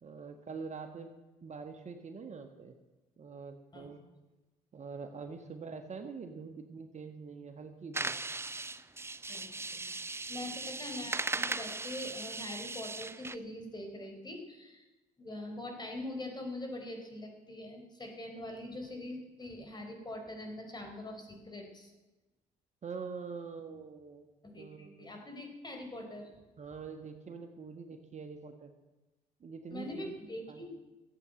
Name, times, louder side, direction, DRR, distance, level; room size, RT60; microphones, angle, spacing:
voice 1, 0.0-1.1 1.4-2.7 3.2-4.0 4.7-8.1 10.5-10.6 22.8-24.3 24.6-25.2 26.6-28.7 29.4-30.1 30.5-30.6, right 5 dB, 45° right, 6 dB, 1.5 m, -44 dB
sound 1, 7.9-13.4, right 3 dB, 15° right, 0.6 m, -38 dB
voice 2, 9.3-14.9 15.2-21.9 24.4-26.4 29.7-30.7, left 1 dB, 25° left, 3 dB, 4.0 m, -43 dB
14.5 x 8.3 x 7.7 m, 1.1 s
supercardioid pair, 60°, 17 cm